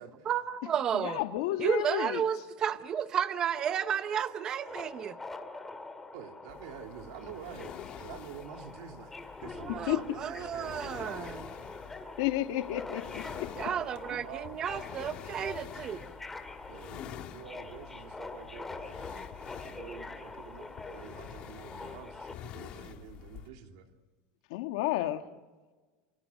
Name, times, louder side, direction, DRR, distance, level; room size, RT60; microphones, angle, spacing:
voice 1, 0.3-1.2 1.6-5.2 9.6-11.4 13.6-16.1, right 8 dB, 30° right, 0.8 m, -32 dB
voice 2, 0.9-2.2 9.9-10.2 12.2-13.5 24.5-25.3, left 15 dB, 80° left, 1.6 m, -31 dB
Subway metro underground, 3.5-22.3, left 3 dB, 10° left, 1.9 m, -45 dB
voice 3, 6.1-11.5 13.7-14.6 16.7-19.3 19.6-23.9, right 8 dB, 75° right, 3.1 m, -48 dB
sound 1, 6.5-23.5, left 11 dB, 45° left, 1.7 m, -48 dB
28.5 x 28.5 x 6.4 m
cardioid pair, 155°, 2 cm